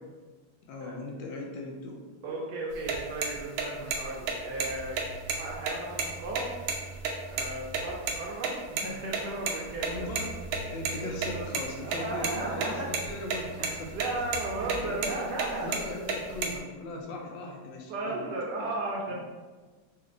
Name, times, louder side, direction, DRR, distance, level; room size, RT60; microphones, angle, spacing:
voice 1, 0.7-2.0 9.9-14.2 14.8-15.3 15.6-18.2, left 2 dB, 75° left, 1 dB, 1.2 m, -39 dB
voice 2, 2.2-5.0 5.3-6.5 7.3-10.7 11.0-12.9 13.6-15.8 17.9-19.1, right 2 dB, 70° right, -2 dB, 1.1 m, -35 dB
sound 1, 2.7-7.8 8.1-8.2 8.4-8.5 8.8-8.9 9.1-9.2 9.5-9.6 9.8-10.9 11.2-11.6 11.9-12.7 12.9-13.4 13.6-14.1 14.3-14.4 14.7-15.1 15.4-16.6, right 6 dB, 90° right, 1.4 m, -30 dB
Telephone, 4.4-8.4 9.6-15.3, right 4 dB, 55° left, 1.7 m, -45 dB
4.0 x 2.4 x 2.5 m, 1.3 s
omnidirectional pair, 2.1 m